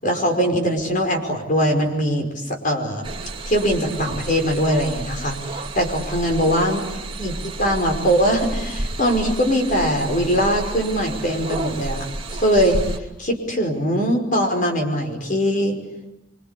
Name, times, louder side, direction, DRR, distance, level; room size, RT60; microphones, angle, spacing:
voice 1, 0.0-3.1 3.5-6.8 7.2-12.1 12.4-12.8 13.2-15.8, equal, 45° left, 4 dB, 5.4 m, -21 dB
sound 1, 3.0-13.0, right 2 dB, 30° right, 2.7 m, -31 dB
26.5 x 25.5 x 8.5 m, 0.93 s
head